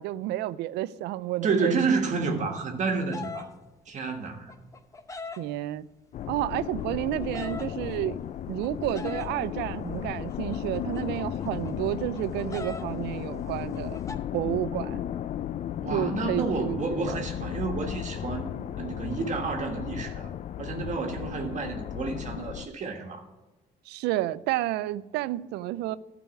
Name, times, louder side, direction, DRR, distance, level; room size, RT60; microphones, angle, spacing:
voice 1, 0.0-1.9 5.4-5.9 6.3-8.2 8.5-14.0 14.3-15.0 15.9-16.8 17.1-17.2 23.9-26.0, right 15 dB, 85° right, 0.4 m, -30 dB
voice 2, 1.4-3.5 3.9-4.5 15.8-18.5 18.8-20.3 20.6-23.2, right 4 dB, 45° right, 1.4 m, -30 dB
sound 1, 3.1-3.4 4.2-5.4 6.3-7.7 8.6-9.3 10.3-12.8 13.1-13.2 13.4-14.2, left 3 dB, 20° left, 0.8 m, -41 dB
sound 2, 6.1-22.7, left 10 dB, 45° left, 0.4 m, -35 dB
12.0 x 4.8 x 8.2 m
cardioid pair, 110°, 17 cm